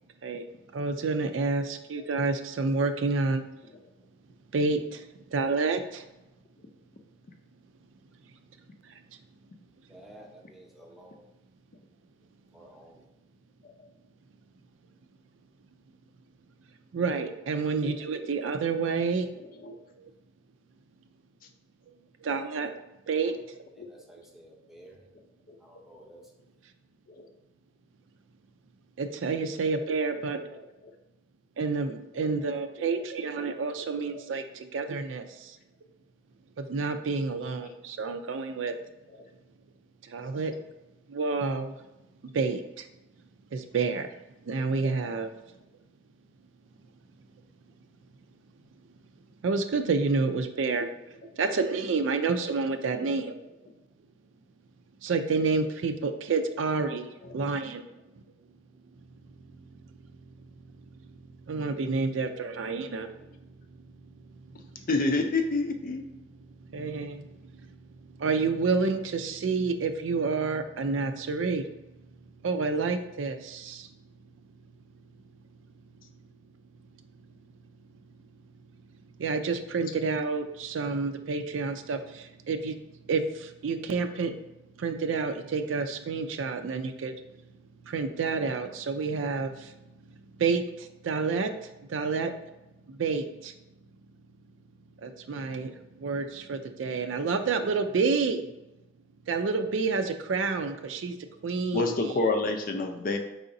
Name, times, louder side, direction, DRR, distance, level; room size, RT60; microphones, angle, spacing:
voice 1, 0.7-3.4 4.5-5.0 5.3-6.0 16.9-19.3 20.0-20.1 22.2-22.7 23.1-23.3 29.0-30.4 31.6-35.6 36.6-38.7 40.0-40.5 41.1-41.7 42.3-42.9 43.5-44.1 44.5-45.3 49.4-50.9 51.4-53.3 55.0-57.8 61.5-63.1 64.3-64.6 66.7-71.7 72.4-73.9 79.2-82.8 83.0-84.3 84.8-87.1 87.8-89.7 90.4-92.3 92.9-93.5 95.0-98.5 99.3-101.2 101.4-102.1, right 4 dB, 80° right, 8 dB, 0.4 m, -29 dB
voice 2, 9.9-11.2 12.5-13.1 23.7-25.0 25.6-26.2, right 1 dB, ahead, -1 dB, 0.7 m, -52 dB
voice 3, 64.9-66.0 101.7-103.2, left 3 dB, 45° left, 4 dB, 0.5 m, -27 dB
4.8 x 3.9 x 2.6 m, 0.96 s
head